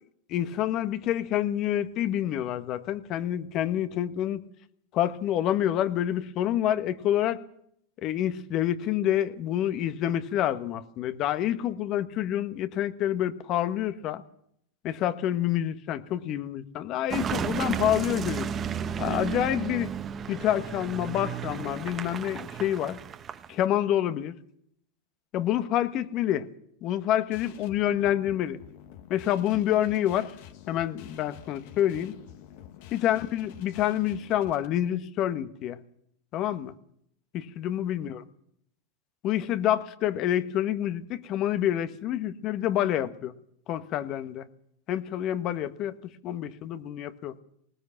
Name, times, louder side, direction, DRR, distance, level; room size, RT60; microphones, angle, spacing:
voice 1, 0.3-4.4 4.9-7.4 8.0-14.2 14.8-18.5 19.0-19.9 20.3-23.0 23.5-24.3 25.3-26.5 26.8-28.6 29.1-30.3 30.7-32.1 32.9-35.8 36.3-36.7 37.3-38.2 39.2-43.3 43.7-44.5 44.9-45.9 46.2-47.3, left 11 dB, 45° left, 11 dB, 1.5 m, -27 dB
Car passing by / Engine, 17.1-23.7, right 8 dB, 30° right, 1.2 m, -33 dB
sound 1, 27.3-34.7, left 10 dB, 60° left, 1.7 m, -48 dB
20.0 x 19.0 x 7.3 m, 0.71 s
hypercardioid pair, 90°, 0 cm